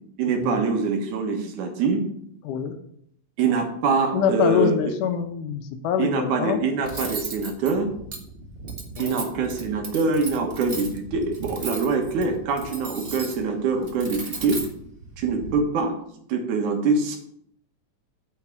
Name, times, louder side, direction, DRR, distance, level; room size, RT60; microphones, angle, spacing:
voice 1, 0.2-2.0 3.4-4.8 6.0-7.9 9.0-14.6 15.2-15.9 16.3-17.2, right 4 dB, 80° right, 2 dB, 3.0 m, -24 dB
voice 2, 4.1-6.6 9.0-9.3, left 8 dB, 85° left, 7 dB, 2.6 m, -25 dB
Cutlery silverware, 6.8-15.5, right 3 dB, 35° right, 0.9 m, -37 dB
9.3 x 5.9 x 7.3 m, 0.70 s
omnidirectional pair, 3.6 m